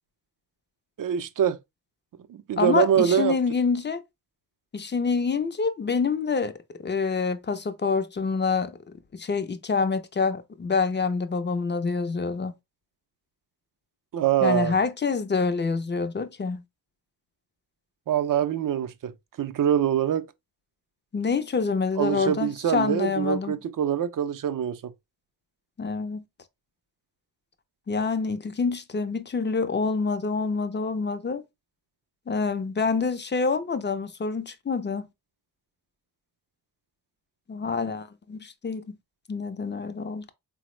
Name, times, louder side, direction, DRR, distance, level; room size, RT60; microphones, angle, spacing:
voice 1, 1.0-1.6 2.3-3.3 14.1-14.8 18.1-19.1 19.4-20.3 22.0-24.9, right 9 dB, 50° right, 0.5 m, -24 dB
voice 2, 2.6-4.0 4.7-6.5 6.8-8.8 9.1-12.5 14.4-16.6 21.1-23.6 25.8-26.2 27.9-31.4 32.3-35.1 37.5-39.0 39.3-40.3, left 4 dB, 25° left, 0.4 m, -26 dB
3.5 x 2.0 x 3.0 m
cardioid pair, 50°, 44 cm